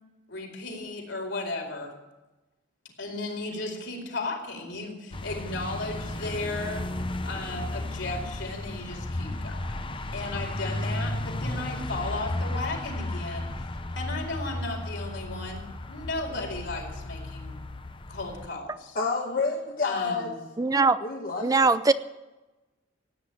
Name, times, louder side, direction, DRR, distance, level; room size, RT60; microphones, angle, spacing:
voice 1, 0.3-1.9 3.0-6.8 7.2-13.7 14.0-17.6 18.1-19.0 19.8-20.4, left 2 dB, 70° left, 0 dB, 4.6 m, -35 dB
sound 1, 5.1-18.5, left 1 dB, 25° left, 0.9 m, -34 dB
voice 2, 18.9-20.3 21.0-21.7, left 4 dB, 50° left, 1 dB, 1.5 m, -29 dB
voice 3, 20.6-21.0 21.4-21.9, right 3 dB, 20° right, 13 dB, 0.5 m, -21 dB
16.5 x 9.8 x 8.9 m, 1.1 s
head